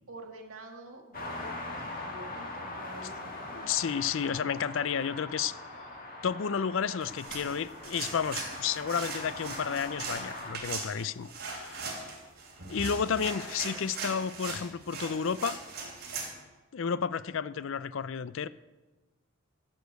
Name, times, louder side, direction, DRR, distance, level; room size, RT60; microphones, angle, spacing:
voice 1, 0.1-3.6 13.1-13.9, right 2 dB, 70° right, 1 dB, 1.9 m, -48 dB
sound 1, 1.1-10.5, left 2 dB, 40° left, 1.9 m, -41 dB
voice 2, 3.5-5.6 6.2-12.0 12.7-15.6 16.7-18.5, left 7 dB, 60° left, 17 dB, 0.4 m, -31 dB
sound 2, 7.0-16.3, right 4 dB, 45° right, 3.3 m, -40 dB
13.0 x 6.6 x 8.0 m, 1.2 s
head